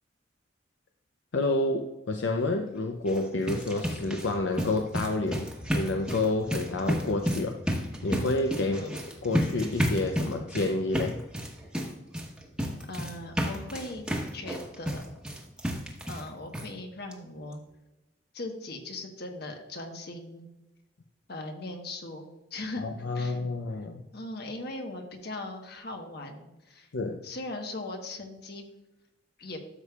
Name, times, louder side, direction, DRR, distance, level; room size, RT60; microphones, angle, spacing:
voice 1, 1.3-7.6 8.0-11.2 22.8-24.0 26.9-27.2, left 2 dB, 80° left, 4 dB, 0.6 m, -29 dB
sound 1, 3.0-16.3 16.5-16.7 17.1-17.2 17.5-17.6, equal, 5° right, 1.1 m, -32 dB
voice 2, 8.6-8.9 12.9-15.0 16.1-17.6 18.3-20.5 21.3-22.9 23.1-23.4 24.1-26.9 27.2-28.6 29.4-29.6, left 2 dB, 60° left, 3 dB, 1.3 m, -39 dB
12.5 x 6.7 x 2.4 m, 1.0 s
head